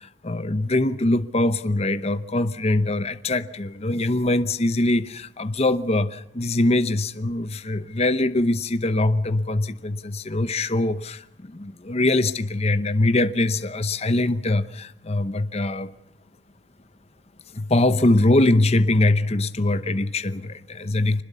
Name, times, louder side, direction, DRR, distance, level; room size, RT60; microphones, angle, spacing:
voice 1, 0.0-15.9 17.5-21.2, left 2 dB, 35° left, 11 dB, 0.8 m, -22 dB
25.0 x 20.0 x 6.9 m, 0.85 s
head